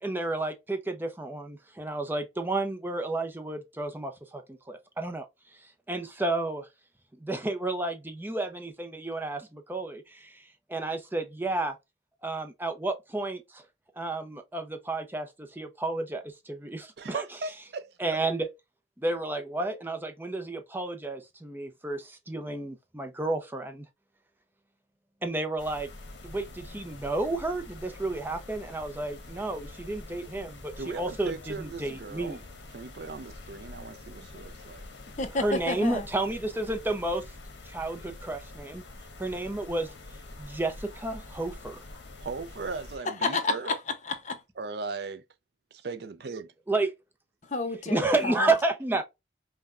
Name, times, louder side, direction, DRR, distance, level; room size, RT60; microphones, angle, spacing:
voice 1, 0.0-5.3 5.9-6.7 7.2-10.4 10.7-11.8 12.2-13.6 14.0-17.2 18.0-18.5 19.0-23.8 25.2-25.9 26.2-32.4 35.3-37.2 37.7-38.8 39.2-39.9 40.4-41.8 46.7-46.9 47.9-49.0, right 2 dB, 10° right, 0.5 m, -31 dB
voice 2, 17.0-18.2 30.8-32.4 32.7-34.8 42.2-43.8 44.6-45.2 45.7-46.5, right 4 dB, 60° right, 0.5 m, -38 dB
sound 1, 25.6-43.0, left 2 dB, 75° left, 1.0 m, -46 dB
voice 3, 35.2-36.1 43.0-44.4 47.5-48.5, left 3 dB, 40° left, 0.7 m, -30 dB
5.6 x 2.2 x 2.4 m
head